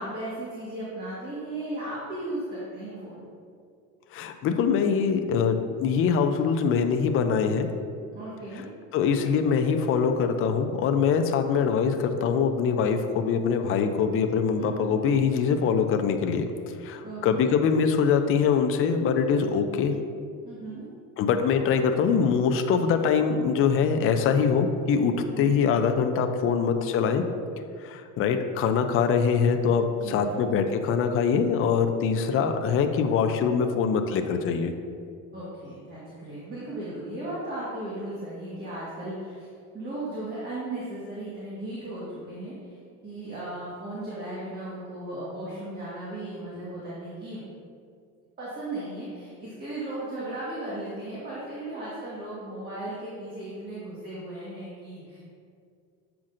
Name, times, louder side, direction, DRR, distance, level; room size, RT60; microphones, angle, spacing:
voice 1, 0.0-3.3 8.1-8.7 14.6-15.0 17.0-17.5 20.4-20.9 25.2-25.5 30.0-30.5 35.3-39.5 39.7-42.8 43.0-47.4 48.4-55.2, right 1 dB, 30° right, -8 dB, 1.5 m, -36 dB
voice 2, 4.1-7.7 8.9-20.0 21.2-27.2 27.8-34.7, left 6 dB, 45° left, 6 dB, 0.5 m, -23 dB
7.3 x 5.8 x 2.5 m, 2.3 s
cardioid pair, 135°, 31 cm